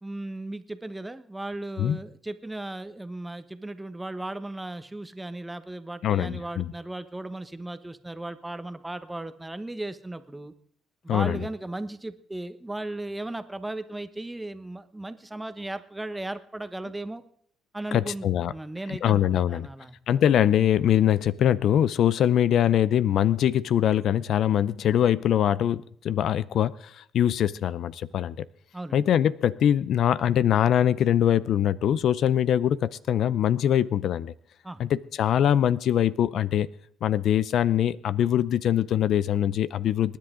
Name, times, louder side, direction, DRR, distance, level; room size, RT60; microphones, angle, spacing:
voice 1, 0.0-10.5 11.0-17.2 17.7-20.0 28.7-29.1 34.6-34.8, right 2 dB, 10° right, 1.0 m, -36 dB
voice 2, 6.0-6.7 11.1-11.4 17.9-18.5 18.9-19.7 20.1-28.4 28.9-34.3 34.8-36.7 37.0-40.2, left 10 dB, 70° left, 0.5 m, -23 dB
27.0 x 10.5 x 3.8 m
cardioid pair, 110°, 0 cm